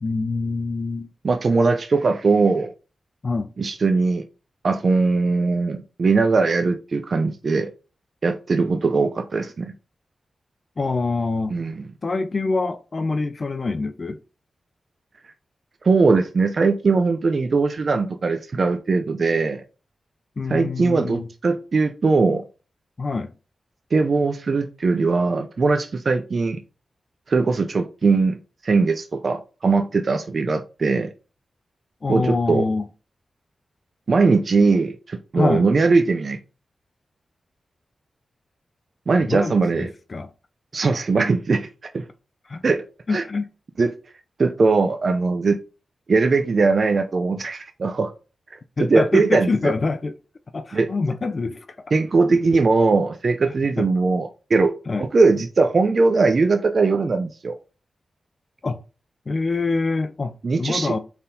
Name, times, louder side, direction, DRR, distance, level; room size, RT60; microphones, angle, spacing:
voice 1, 0.0-1.1 3.2-3.5 10.8-11.6 12.0-14.2 20.4-21.3 23.0-23.3 32.0-32.9 35.3-35.6 39.2-40.3 42.5-42.6 43.1-43.5 48.8-50.1 50.5-51.7 53.8-53.9 54.9-55.1 58.6-58.8 59.3-61.0, left 3 dB, 45° left, 0.3 m, -25 dB
voice 2, 1.2-2.7 3.6-4.2 4.6-7.7 8.2-9.7 11.5-11.8 15.8-19.6 20.5-22.4 23.9-26.6 27.3-31.1 32.1-32.6 34.1-36.4 39.1-39.9 40.7-41.7 41.9-42.0 42.6-42.8 43.1-43.2 43.8-43.9 44.4-45.6 46.1-48.1 48.9-49.5 50.7-50.9 51.9-54.7 55.0-57.5 60.4-61.0, right 4 dB, 55° right, 0.4 m, -20 dB
4.3 x 3.5 x 2.6 m
cardioid pair, 75°, 0 cm